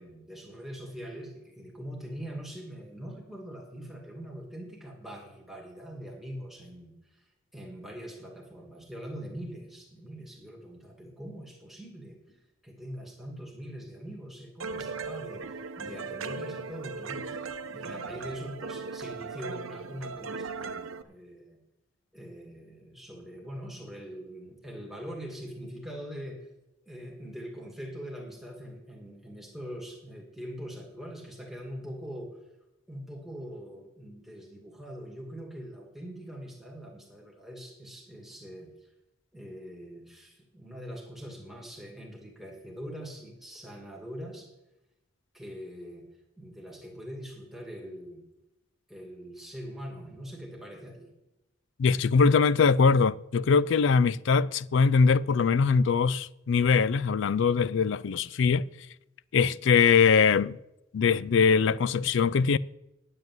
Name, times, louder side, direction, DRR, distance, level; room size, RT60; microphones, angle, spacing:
voice 1, 0.0-12.4 12.6-17.4 17.7-21.6 22.1-26.5 26.8-32.4 32.9-38.7 39.3-44.5 45.3-46.1 46.4-48.2 48.9-51.1, equal, ahead, 2.0 m, -42 dB
sound 1, 14.6-21.0, right 4 dB, 80° right, 0.8 m, -38 dB
voice 2, 51.8-58.7 59.3-60.6 60.9-62.6, left 5 dB, 60° left, 0.4 m, -22 dB
9.6 x 7.8 x 9.3 m
head